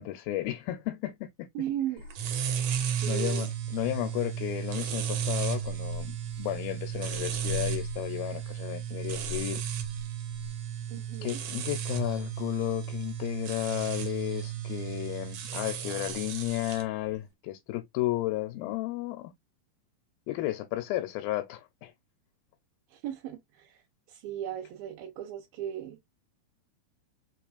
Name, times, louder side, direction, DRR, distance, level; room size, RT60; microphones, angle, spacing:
voice 1, 0.0-1.5 3.1-9.6 11.2-19.3 20.3-21.9, left 15 dB, 90° left, 2.3 m, -33 dB
voice 2, 1.5-2.0 3.0-3.5 10.9-11.4 22.9-23.8 24.1-26.0, right 11 dB, 85° right, 2.6 m, -36 dB
sound 1, 2.1-16.8, right 8 dB, 70° right, 1.9 m, -34 dB
5.6 x 2.4 x 2.3 m
omnidirectional pair, 4.1 m